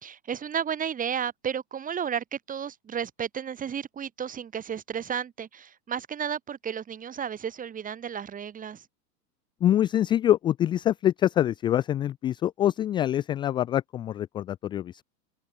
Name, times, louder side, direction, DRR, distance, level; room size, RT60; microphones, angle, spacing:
voice 1, 0.0-8.9, right 8 dB, 15° right, 2.1 m, -33 dB
voice 2, 9.6-15.0, left 11 dB, 10° left, 0.4 m, -25 dB
hypercardioid pair, 140°, 50 cm